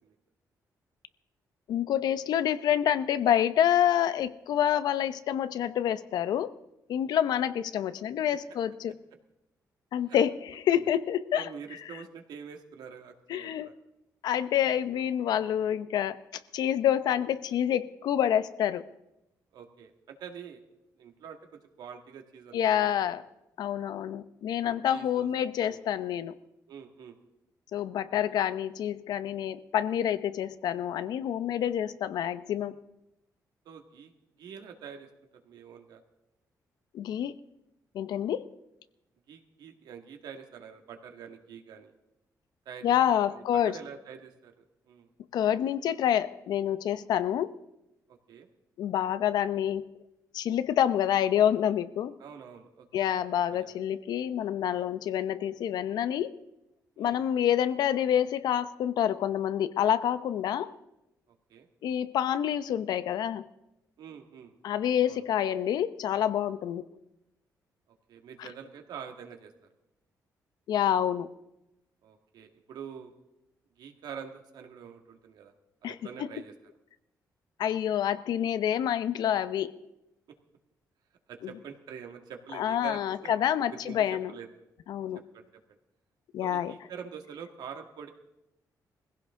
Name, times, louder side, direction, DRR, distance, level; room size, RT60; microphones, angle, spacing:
voice 1, 1.7-6.6 6.9-8.9 9.9-11.4 13.3-13.7 14.2-18.9 22.5-23.2 23.6-26.4 27.7-32.8 36.9-37.3 37.9-38.5 42.8-43.8 45.3-47.6 48.8-49.9 50.3-52.2 52.9-56.4 57.0-60.7 61.8-63.5 64.6-66.8 68.4-68.5 70.7-71.3 75.8-75.9 77.6-79.8 82.5-84.3 84.9-85.2 86.3-86.7, left 10 dB, 85° left, 14 dB, 0.7 m, -27 dB
voice 2, 11.3-13.7 19.5-20.6 21.0-22.9 24.6-25.3 25.6-25.8 26.7-27.2 28.1-28.4 33.7-34.1 34.4-35.1 35.4-36.0 39.3-41.9 42.7-45.1 48.1-48.5 52.2-53.1 53.5-53.7 57.0-57.2 61.5-61.7 64.0-64.5 65.1-65.2 68.1-69.5 72.0-73.1 73.8-75.5 75.8-76.5 81.3-83.3 83.7-84.5 85.3-85.4 86.4-88.1, right 7 dB, 85° right, 4 dB, 1.9 m, -45 dB
20.5 x 16.0 x 3.8 m, 0.91 s
cardioid pair, 120°, 7 cm